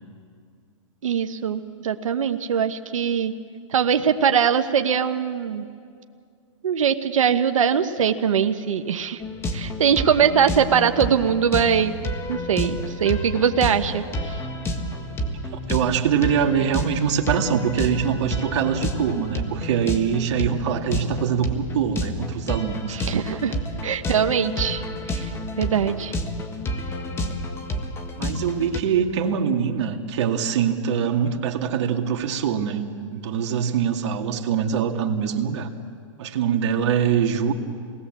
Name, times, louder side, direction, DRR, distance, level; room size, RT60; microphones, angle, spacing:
voice 1, 1.0-3.3 3.7-5.6 6.6-9.2 9.5-11.9 12.3-14.4 22.9-23.5 23.8-25.3 25.6-26.1, right 7 dB, 85° right, 8 dB, 1.2 m, -22 dB
sound 1, 9.2-28.8, left 1 dB, 15° left, 1.7 m, -30 dB
voice 2, 15.7-23.0 28.2-32.8 33.1-35.7 36.2-37.5, right 7 dB, 60° right, 4 dB, 2.3 m, -23 dB
27.5 x 19.5 x 7.5 m, 2.2 s
hypercardioid pair, 135°, 16 cm